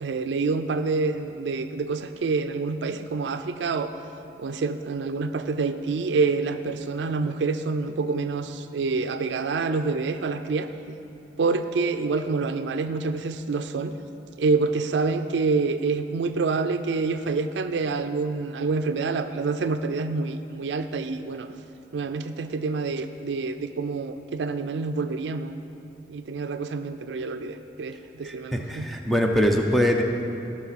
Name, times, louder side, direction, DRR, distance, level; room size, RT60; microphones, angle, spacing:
voice 1, 0.0-3.9 4.4-10.9 11.4-13.9 14.4-21.5 21.9-25.5 26.1-28.9, right 4 dB, 85° right, 9 dB, 0.4 m, -27 dB
voice 2, 28.2-30.0, equal, ahead, 2 dB, 0.6 m, -23 dB
17.0 x 6.0 x 4.1 m, 2.9 s
head